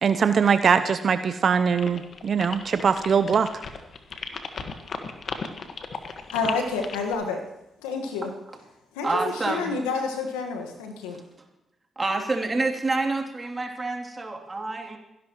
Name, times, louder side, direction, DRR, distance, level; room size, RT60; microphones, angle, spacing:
voice 1, 0.0-3.5, right 6 dB, 60° right, 10 dB, 0.6 m, -22 dB
sound 1, 1.8-7.2, left 5 dB, 60° left, 1.5 m, -35 dB
voice 2, 6.3-7.4 7.8-8.3 8.9-11.2, left 4 dB, 90° left, 3 dB, 1.5 m, -29 dB
voice 3, 9.0-9.7 12.0-15.0, right 3 dB, 35° right, 1 dB, 3.0 m, -27 dB
29.5 x 11.0 x 3.1 m, 0.90 s
hypercardioid pair, 40°, 0 cm